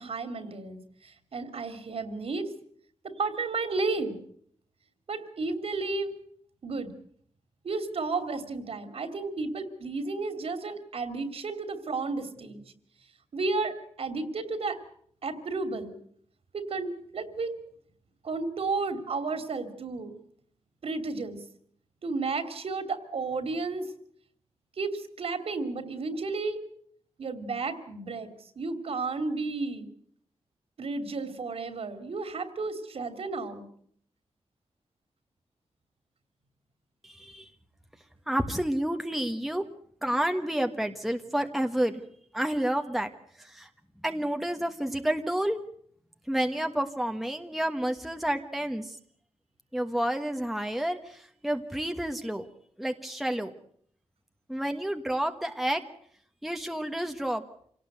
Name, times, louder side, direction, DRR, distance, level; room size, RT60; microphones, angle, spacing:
voice 1, 0.0-2.5 3.2-4.2 5.1-6.1 6.6-6.9 7.6-12.6 13.3-14.8 15.2-16.0 16.5-17.5 18.2-20.1 20.8-21.4 22.0-23.9 24.8-26.6 27.2-28.3 28.6-29.9 30.8-33.7, right 3 dB, 60° right, 9 dB, 3.0 m, -32 dB
voice 2, 37.0-37.5 38.3-39.6 40.0-42.0 42.3-43.1 43.4-43.7 44.0-45.6 46.3-49.0 49.7-52.5 52.8-53.5 54.5-55.8 56.4-57.4, right 1 dB, ahead, 5 dB, 1.4 m, -30 dB
27.0 x 18.0 x 8.0 m, 0.64 s
wide cardioid pair, 145°, 11 cm